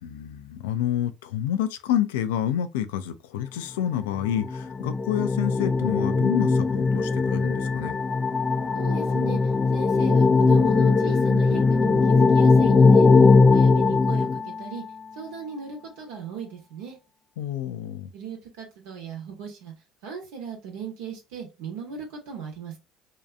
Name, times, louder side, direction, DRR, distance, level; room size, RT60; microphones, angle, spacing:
voice 1, 0.0-8.0 17.4-18.1, left 10 dB, 85° left, 0.4 m, -28 dB
sound 1, 4.2-15.0, left 4 dB, 25° left, 0.5 m, -20 dB
voice 2, 8.7-9.4 9.7-13.1 13.5-14.8 15.2-17.0 18.1-19.7 20.0-22.8, right 6 dB, 75° right, 1.0 m, -37 dB
2.6 x 2.3 x 2.4 m
hypercardioid pair, 75°, 0 cm